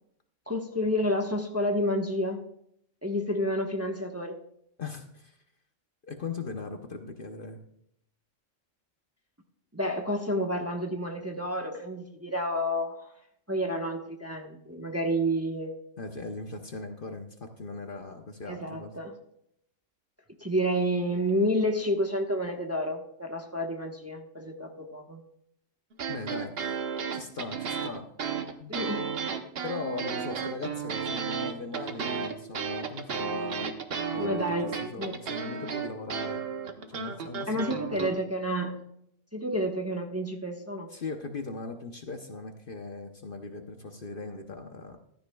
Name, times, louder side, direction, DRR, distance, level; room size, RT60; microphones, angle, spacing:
voice 1, 0.5-2.4 3.0-4.4 9.7-13.1 13.5-15.7 18.5-19.1 20.4-25.2 28.7-29.1 34.1-35.2 37.5-38.8 39.3-40.9, equal, 10° right, 2 dB, 1.0 m, -30 dB
voice 2, 4.8-5.4 6.0-7.6 16.0-18.9 26.1-26.6 27.1-28.1 28.6-28.8 29.6-33.7 34.1-36.5 36.9-38.1 40.9-45.0, left 3 dB, 45° left, 5 dB, 1.0 m, -39 dB
sound 1, 25.9-38.1, right 6 dB, 50° right, 1.1 m, -33 dB
15.0 x 13.0 x 2.3 m, 0.71 s
omnidirectional pair, 1.3 m